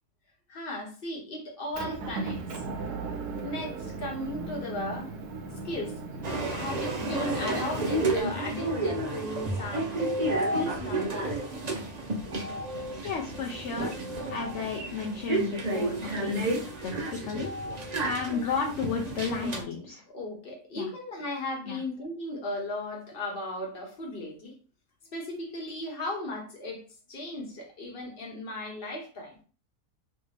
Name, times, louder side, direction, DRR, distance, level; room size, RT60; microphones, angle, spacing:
voice 1, 0.5-2.6 3.4-5.1 5.5-6.2 6.5-10.1 10.5-11.4 19.4-24.5 25.1-26.8 27.1-29.4, left 1 dB, 40° left, 1.1 m, -36 dB
Motor vehicle (road) / Engine, 1.7-8.2, right 3 dB, 75° right, 1.1 m, -37 dB
sound 1, 6.2-19.6, right 2 dB, 50° right, 0.4 m, -31 dB
voice 2, 13.0-13.9 14.3-15.9 16.2-17.5 18.0-20.0 20.8-20.9 21.7-21.8, left 5 dB, 60° left, 0.8 m, -32 dB
3.3 x 2.9 x 3.2 m
omnidirectional pair, 1.8 m